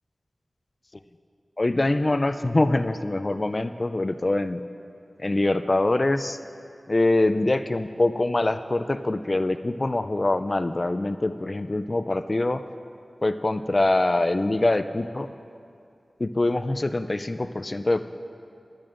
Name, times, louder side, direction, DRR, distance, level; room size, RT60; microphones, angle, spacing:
voice 1, 1.6-4.6 5.2-6.4 6.9-12.6 13.2-15.3 16.2-18.0, left 2 dB, 45° left, 11 dB, 0.4 m, -24 dB
21.5 x 10.5 x 2.5 m, 2.4 s
cardioid pair, 40°, 0 cm